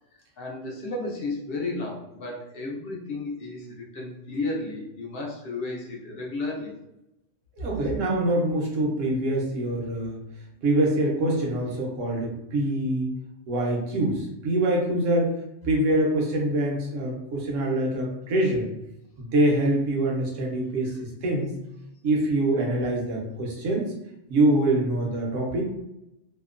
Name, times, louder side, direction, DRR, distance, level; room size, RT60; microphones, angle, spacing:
voice 1, 0.4-6.8, left 2 dB, 60° left, -2 dB, 0.7 m, -33 dB
voice 2, 7.6-10.2 10.6-13.1 13.5-15.3 15.6-18.7 19.2-21.5 22.0-23.9 24.3-25.6, right 1 dB, 80° right, -1 dB, 1.1 m, -24 dB
2.8 x 2.1 x 2.4 m, 0.87 s
omnidirectional pair, 1.3 m